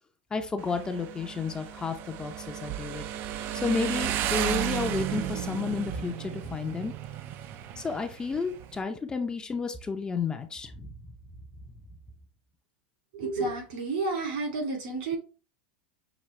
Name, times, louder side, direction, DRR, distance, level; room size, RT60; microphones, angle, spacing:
voice 1, 0.3-3.1 3.6-6.9 7.8-10.9, left 4 dB, 15° left, 6 dB, 0.6 m, -31 dB
Motorcycle, 0.6-8.8, right 11 dB, 45° right, 0.4 m, -34 dB
voice 2, 13.1-15.2, right 3 dB, 75° right, 1 dB, 2.2 m, -30 dB
6.0 x 2.4 x 3.2 m, 0.34 s
supercardioid pair, 125°, 5 cm